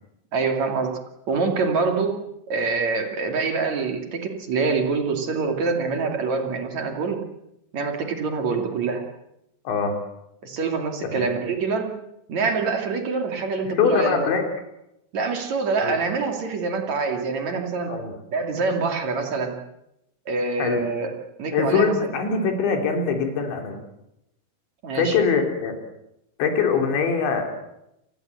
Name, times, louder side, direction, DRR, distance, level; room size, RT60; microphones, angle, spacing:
voice 1, 0.3-0.9 1.3-2.2 2.5-7.2 7.7-9.0 10.4-11.9 12.3-14.3 15.1-17.9 18.3-19.5 20.3-21.1 21.4-22.1 24.8-25.2, right 4 dB, 45° right, 4 dB, 3.3 m, -25 dB
voice 2, 13.8-14.4 15.8-16.0 17.9-18.1 20.6-20.9 21.5-23.8 25.0-25.8 26.4-27.5, left 5 dB, 70° left, 4 dB, 5.5 m, -23 dB
29.0 x 19.5 x 7.9 m, 0.84 s
omnidirectional pair, 5.4 m